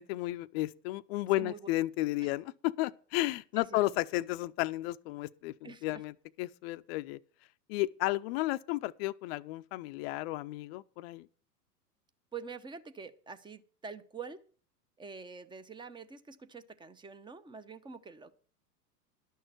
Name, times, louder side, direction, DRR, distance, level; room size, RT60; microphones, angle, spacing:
voice 1, 0.0-7.2 7.7-11.3, left 17 dB, 40° left, 0.6 m, -33 dB
voice 2, 5.6-6.0 12.3-14.4 15.0-18.5, right 5 dB, 10° right, 0.7 m, -46 dB
12.0 x 6.4 x 7.9 m
hypercardioid pair, 100°, 48 cm